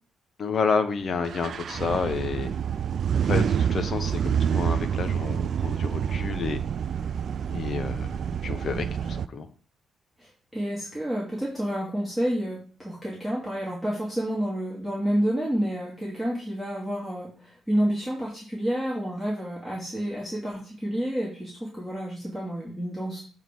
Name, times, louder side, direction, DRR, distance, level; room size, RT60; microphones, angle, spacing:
voice 1, 0.4-2.5 3.2-6.6 7.5-9.5, left 5 dB, 45° left, 9 dB, 1.0 m, -30 dB
sound 1, 1.3-9.3, right 8 dB, 55° right, 0.3 m, -27 dB
voice 2, 10.2-23.2, equal, 5° left, -6 dB, 2.4 m, -29 dB
7.9 x 3.8 x 6.1 m, 0.42 s
cardioid pair, 120°, 0 cm